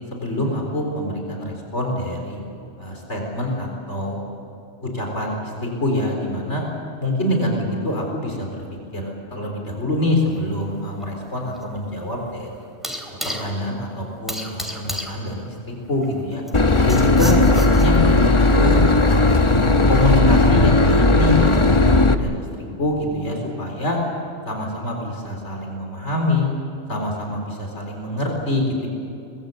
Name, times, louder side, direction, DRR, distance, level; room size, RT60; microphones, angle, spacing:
voice 1, 0.1-2.4 2.8-4.3 4.8-6.6 7.0-8.5 8.9-12.5 13.2-16.4 16.9-19.2 19.9-22.4 22.8-24.0 24.5-26.5 26.9-28.9, left 1 dB, 85° left, 1 dB, 4.5 m, -25 dB
sound 1, 10.4-18.2, equal, ahead, 3.3 m, -35 dB
Boat Water vehicle / Engine, 16.5-22.1, left 2 dB, 25° left, 1.1 m, -16 dB
25.0 x 21.5 x 8.1 m, 2.7 s
omnidirectional pair, 1.2 m